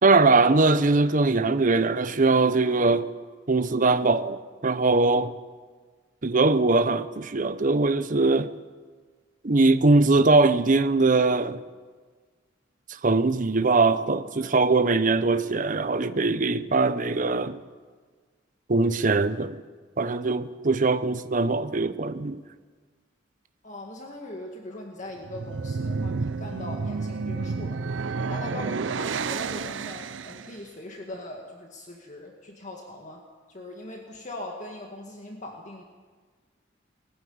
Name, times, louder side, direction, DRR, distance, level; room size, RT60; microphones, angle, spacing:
voice 1, 0.0-3.1 3.5-5.3 6.2-8.5 9.4-11.6 12.9-17.6 18.7-19.6 20.0-22.4, right 3 dB, 45° right, 0.8 m, -21 dB
voice 2, 23.6-27.8 28.2-33.2 33.5-35.8, left 1 dB, 40° left, 2.0 m, -40 dB
sound 1, 25.2-30.6, right 4 dB, 70° right, 0.5 m, -30 dB
20.5 x 14.5 x 9.5 m
head